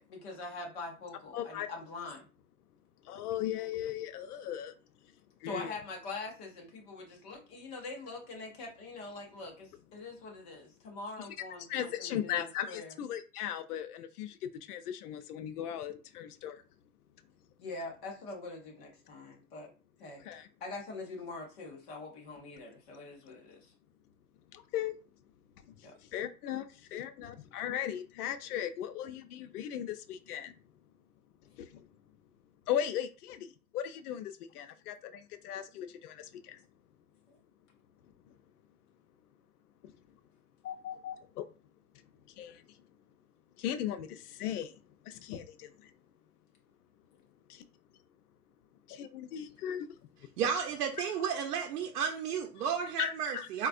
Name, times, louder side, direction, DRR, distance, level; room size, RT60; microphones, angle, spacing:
voice 1, 0.0-2.3 5.4-12.9 17.6-19.7 20.0-20.2 20.6-23.7 25.8-25.9 37.3-37.4, left 3 dB, 20° left, 0.4 m, -44 dB
voice 2, 1.3-1.7 3.0-4.7 5.4-5.7 11.2-11.3 11.7-16.6 20.2-20.5 24.5-24.9 25.8-30.5 31.6-31.9 32.7-33.4 33.7-36.6 39.8-39.9 40.6-41.5 42.3-42.8 43.6-44.8 45.0-45.9 48.9-49.9 53.0-53.5, left 10 dB, 75° left, 0.6 m, -37 dB
voice 3, 50.4-53.7, right 7 dB, 80° right, 0.7 m, -33 dB
4.2 x 2.3 x 2.4 m
supercardioid pair, 150°, 46 cm